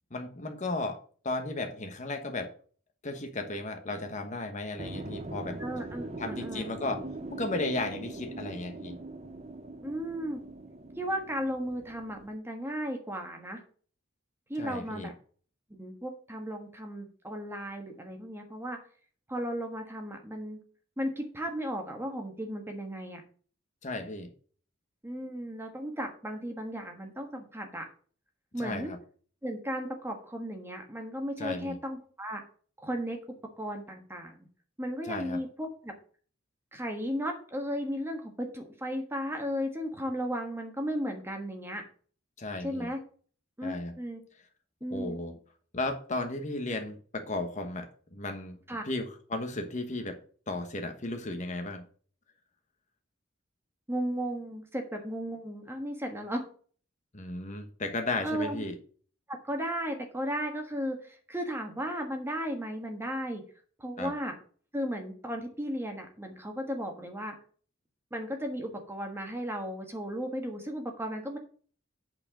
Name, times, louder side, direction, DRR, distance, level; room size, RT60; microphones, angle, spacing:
voice 1, 0.1-1.0 1.2-2.5 3.0-5.6 6.2-7.0 7.3-9.0 14.6-15.1 23.8-24.3 28.6-29.0 31.4-31.8 35.0-35.4 42.4-42.9 43.6-43.9 44.9-45.3 45.7-48.6 48.8-50.2 50.5-51.8 57.1-58.8 64.0-64.1, left 2 dB, 40° left, 5 dB, 1.2 m, -34 dB
sound 1, 4.8-12.3, right 2 dB, 35° right, 0.7 m, -42 dB
voice 2, 5.6-6.7 9.8-10.4 11.0-13.6 14.5-15.1 15.7-18.8 19.3-20.6 21.0-23.2 25.0-27.8 28.5-28.9 29.4-32.4 32.8-34.5 34.8-35.9 36.7-41.8 42.6-43.0 43.6-44.2 44.8-45.2 48.7-48.8 53.9-56.4 58.2-58.6 59.3-63.4 63.8-64.3 64.7-67.3 68.1-71.4, equal, 10° right, 3 dB, 1.3 m, -35 dB
8.5 x 4.5 x 6.1 m, 0.43 s
head